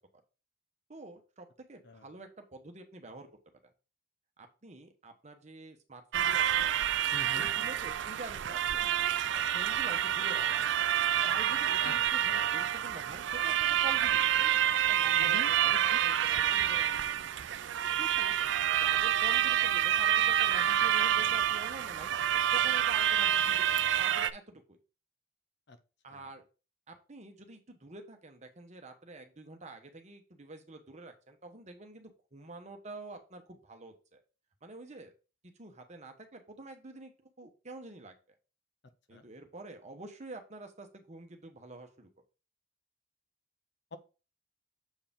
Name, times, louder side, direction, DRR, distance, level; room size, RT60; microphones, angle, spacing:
voice 1, 0.9-3.3 4.4-6.7 7.3-9.0 9.3-10.4 11.2-17.0 18.0-18.4 18.8-22.1 22.5-23.7 24.0-24.8 26.0-26.4 26.9-34.2 34.6-35.1 35.4-37.1 37.4-38.1 39.1-42.1, right 2 dB, 35° right, 5 dB, 1.0 m, -47 dB
sound 1, 6.1-24.3, right 10 dB, 65° right, 0.4 m, -28 dB
voice 2, 7.1-7.5 11.8-11.9 12.3-12.5 15.2-16.0 25.7-25.8 26.1-26.3 39.1-39.2 43.9-44.0, left 2 dB, 60° left, 9 dB, 0.8 m, -45 dB
7.1 x 4.7 x 3.7 m, 0.32 s
head